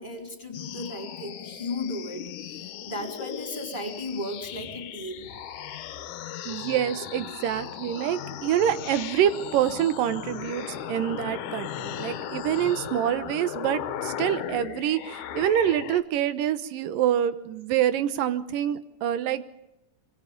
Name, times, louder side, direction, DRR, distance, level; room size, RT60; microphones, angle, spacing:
voice 1, 0.0-5.4, left 2 dB, 15° left, 3 dB, 4.0 m, -35 dB
sound 1, 0.5-16.0, left 9 dB, 70° left, 2.6 m, -37 dB
voice 2, 6.5-19.4, right 10 dB, 85° right, 12 dB, 2.8 m, -26 dB
26.0 x 24.0 x 5.3 m, 0.88 s
omnidirectional pair, 3.8 m